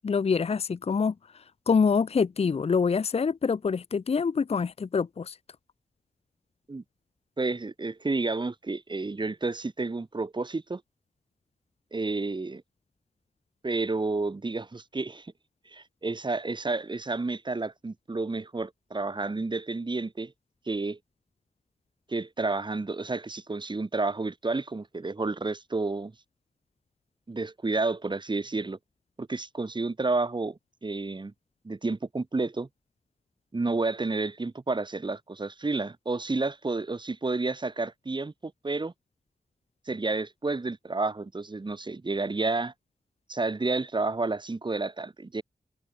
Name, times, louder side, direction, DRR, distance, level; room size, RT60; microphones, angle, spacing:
voice 1, 0.0-5.4, left 5 dB, 40° left, 0.6 m, -26 dB
voice 2, 7.4-10.8 11.9-12.6 13.6-15.3 15.7-20.3 20.7-21.0 22.1-26.1 27.3-28.8 29.2-31.3 31.6-32.7 33.5-38.9 39.9-42.7 43.3-45.4, right 3 dB, 30° right, 3.5 m, -30 dB
wide cardioid pair, 145°, 16 cm